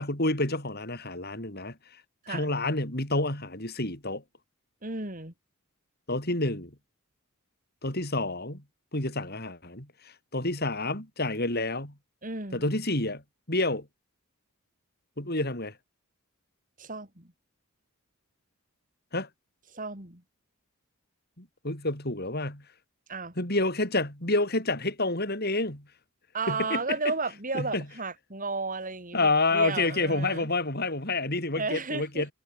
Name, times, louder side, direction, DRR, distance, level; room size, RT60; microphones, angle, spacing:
voice 1, 0.0-1.7 2.3-4.2 6.1-6.7 7.8-8.6 8.9-9.9 10.3-11.9 12.5-13.2 13.5-13.8 15.2-15.7 19.1-19.3 21.4-22.6 23.4-25.8 26.5-26.8 27.5-27.8 29.1-32.3, left 2 dB, 45° left, 6.1 m, -28 dB
voice 2, 4.8-5.3 12.2-12.7 16.8-17.3 19.7-20.2 23.1-23.3 26.3-30.5 31.6-32.3, right 3 dB, 35° right, 4.7 m, -33 dB
head